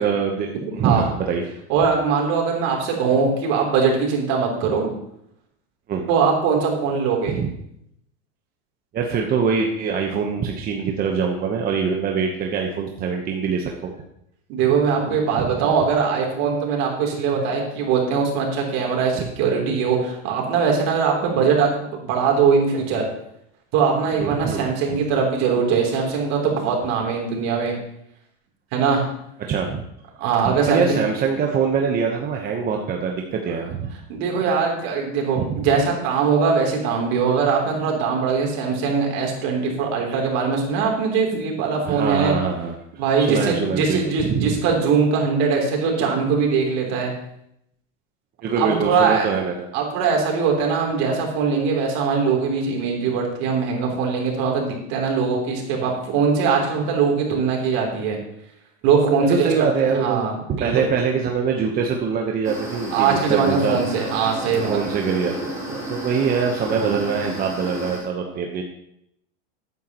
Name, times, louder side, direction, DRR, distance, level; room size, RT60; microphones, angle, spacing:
voice 1, 0.0-1.5 2.6-2.7 5.9-6.1 7.3-7.5 8.9-13.9 15.4-15.5 19.2-19.3 24.2-25.0 29.4-29.8 30.4-33.9 35.4-35.7 41.9-42.8 43.2-44.6 48.4-49.7 59.2-60.2 60.6-63.8 64.4-68.6, right 6 dB, 30° right, 2 dB, 1.0 m, -24 dB
voice 2, 1.7-4.9 6.1-7.4 14.5-23.1 23.7-27.7 28.7-29.0 30.2-31.0 34.1-42.3 43.0-47.1 48.6-49.3 49.7-58.2 58.8-60.7 62.9-64.8 66.7-67.0, right 5 dB, 55° right, 0 dB, 3.3 m, -21 dB
sound 1, 62.4-68.0, right 1 dB, 10° right, 3.1 m, -33 dB
14.0 x 9.3 x 3.0 m, 0.76 s
supercardioid pair, 135°, 33 cm